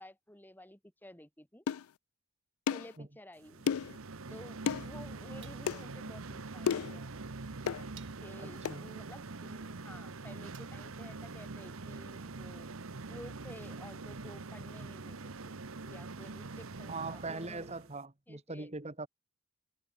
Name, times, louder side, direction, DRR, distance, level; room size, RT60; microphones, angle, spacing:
voice 1, 0.0-1.6 2.7-3.8 4.3-7.3 8.2-12.7 13.1-15.5 15.9-17.8 18.3-18.7, left 1 dB, 10° left, 2.2 m, -53 dB
sound 1, 1.7-1.9 2.7-2.9 3.7-4.0 4.7-4.9 5.7-5.8 6.7-7.0 7.7-7.8 8.7-8.8, left 7 dB, 90° left, 0.4 m, -32 dB
sound 2, 2.9-3.0 5.4-6.0 7.0-7.1 8.0-8.5 10.5-11.1, right 12 dB, 60° right, 3.7 m, -58 dB
sound 3, 3.4-18.0, right 3 dB, 75° right, 1.1 m, -44 dB
voice 2, 8.4-8.9 16.9-19.1, right 3 dB, 30° right, 1.4 m, -41 dB
head